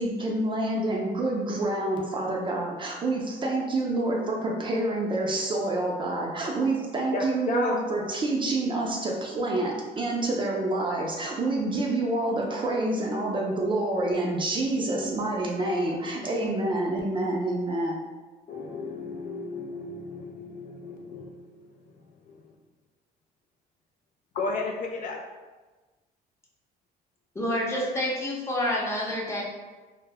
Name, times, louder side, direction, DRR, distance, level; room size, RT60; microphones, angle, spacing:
voice 1, 0.0-18.1, right 2 dB, 30° right, -1 dB, 0.4 m, -27 dB
voice 2, 7.1-7.7 18.5-21.7 22.3-22.4 24.3-25.2, left 3 dB, 50° left, 0 dB, 0.4 m, -33 dB
voice 3, 27.3-29.4, left 1 dB, 15° left, -4 dB, 0.7 m, -28 dB
2.2 x 2.0 x 3.4 m, 1.3 s
cardioid pair, 110°, 17 cm